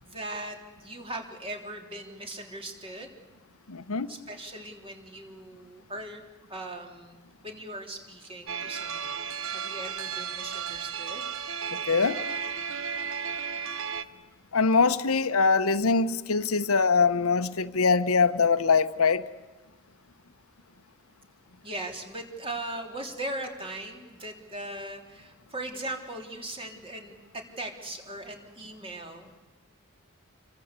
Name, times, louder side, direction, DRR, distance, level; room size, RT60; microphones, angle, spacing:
voice 1, 0.0-3.2 4.1-6.2 6.5-7.2 7.4-11.3 21.6-29.4, right 1 dB, 25° right, 3 dB, 3.4 m, -39 dB
voice 2, 3.7-4.1 11.7-12.2 14.5-19.3, left 4 dB, 90° left, 11 dB, 1.0 m, -23 dB
sound 1, 8.5-14.0, right 7 dB, 65° right, 1.1 m, -34 dB
28.0 x 23.0 x 8.3 m, 1.2 s
head